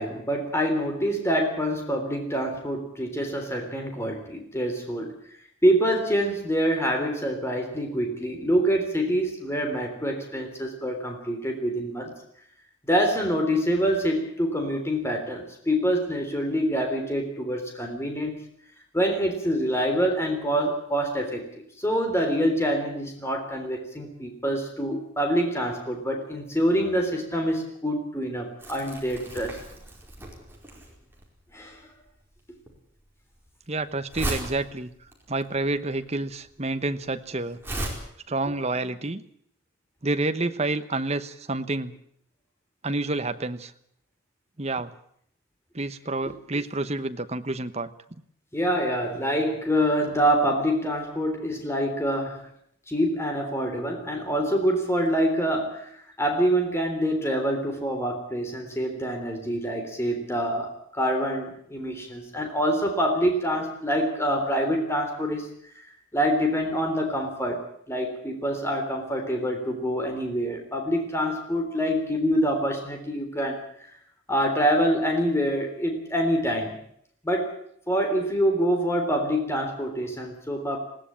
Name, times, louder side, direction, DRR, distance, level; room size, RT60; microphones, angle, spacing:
voice 1, 0.0-5.1 5.6-12.1 12.9-18.3 18.9-29.6 31.5-31.8 48.5-52.5 52.9-55.9 56.2-65.5 66.1-67.6 67.9-73.6 74.3-76.8 77.2-77.5 77.9-80.8, equal, 10° left, 3 dB, 3.5 m, -26 dB
Crumpling crinkling, 28.6-37.9, right 1 dB, 10° right, 4.6 m, -37 dB
voice 2, 33.7-34.9 35.3-37.6 38.3-39.2 40.0-41.9 42.8-43.7 44.6-44.9 45.7-47.9, right 2 dB, 30° right, 10 dB, 1.0 m, -29 dB
20.5 x 17.5 x 8.7 m, 0.68 s
head